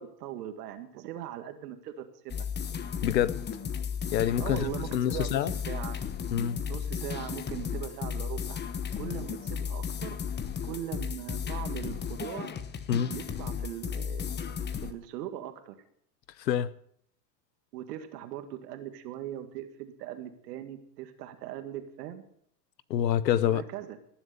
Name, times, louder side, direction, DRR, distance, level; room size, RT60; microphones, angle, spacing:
voice 1, 0.0-2.5 4.4-6.0 6.7-8.6 9.0-10.2 10.6-12.6 13.1-14.3 14.8-15.7 17.7-22.2 23.4-24.0, right 11 dB, 70° right, 8 dB, 2.0 m, -40 dB
sound 1, 2.3-14.9, left 7 dB, 20° left, 1.1 m, -34 dB
voice 2, 3.0-3.4 4.1-5.5 6.3-6.6 12.9-13.1 16.4-16.7 22.9-23.6, left 10 dB, 85° left, 19 dB, 0.9 m, -26 dB
18.0 x 7.1 x 6.8 m, 0.67 s
hypercardioid pair, 105°, 49 cm